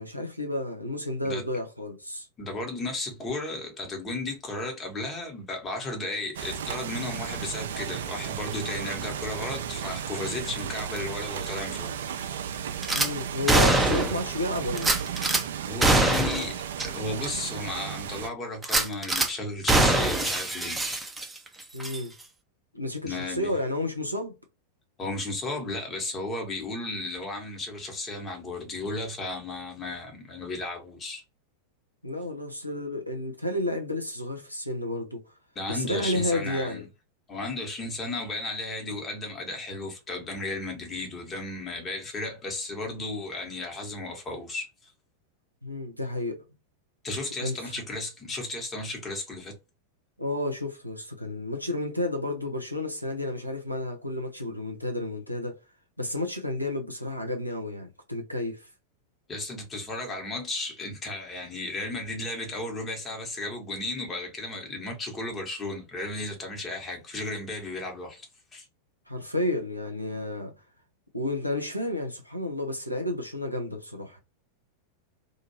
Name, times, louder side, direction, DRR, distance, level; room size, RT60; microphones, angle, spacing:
voice 1, 0.0-2.3 12.9-15.0 21.7-22.1 22.7-24.3 32.0-35.3 35.7-36.8 45.6-46.4 47.4-47.7 50.2-55.6 56.0-58.7 69.1-70.5 71.1-74.2, left 1 dB, 90° left, 0.6 m, -31 dB
voice 2, 2.4-11.9 15.6-21.0 23.0-23.5 25.0-31.2 35.5-36.9 37.3-44.9 47.0-49.5 59.3-68.6, left 2 dB, 20° left, 1.1 m, -34 dB
sound 1, 6.3-18.3, right 8 dB, 60° right, 0.3 m, -34 dB
Gunshot gunfire / Glass, 12.8-13.1 13.5-14.2 14.8-15.4 15.8-16.5 16.8-16.9 17.3-17.4 18.6-19.3 19.7-21.5 21.8-22.0, right 2 dB, 10° right, 0.6 m, -23 dB
2.6 x 2.4 x 2.8 m
figure-of-eight pair, 90°, 0 cm